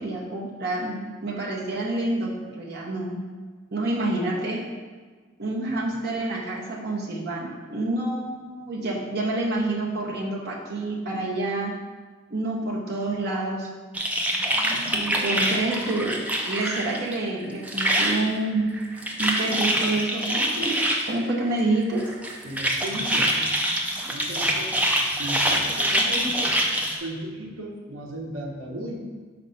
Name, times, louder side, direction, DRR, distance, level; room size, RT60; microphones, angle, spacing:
voice 1, 0.0-3.2 3.7-4.6 5.4-11.7 12.3-13.7 14.9-18.7 19.2-20.8 21.1-22.0, right 2 dB, 50° right, -4 dB, 0.9 m, -28 dB
sound 1, 13.9-17.2 17.4-18.3 18.7-21.1 22.0-27.0, equal, 5° right, 0.5 m, -25 dB
voice 2, 22.4-23.4 24.1-24.7 25.2-26.5 27.0-28.9, right 1 dB, 85° right, -1 dB, 1.0 m, -35 dB
5.2 x 4.0 x 5.6 m, 1.5 s
head